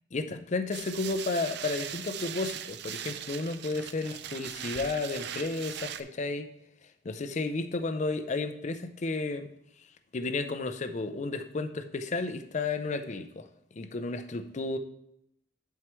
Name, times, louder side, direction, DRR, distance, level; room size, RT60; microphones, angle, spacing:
voice 1, 0.1-6.5 7.0-9.5 10.1-13.5 13.8-14.8, left 3 dB, 40° left, 10 dB, 0.5 m, -32 dB
sound 1, 0.7-6.0, right 10 dB, 65° right, 0.4 m, -39 dB
11.0 x 4.7 x 3.1 m, 0.76 s
head